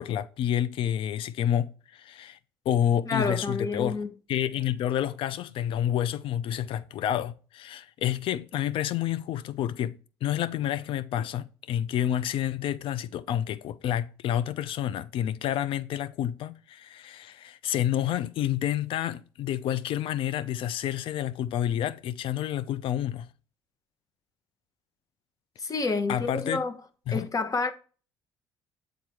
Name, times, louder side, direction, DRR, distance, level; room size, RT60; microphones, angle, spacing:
voice 1, 0.0-2.4 2.7-4.0 4.3-23.3 26.1-26.6 27.1-27.3, left 11 dB, 65° left, 0.5 m, -29 dB
voice 2, 3.1-4.1 25.6-26.7 27.1-27.7, left 3 dB, 40° left, 1.1 m, -29 dB
7.6 x 3.9 x 4.7 m
supercardioid pair, 65°, 9 cm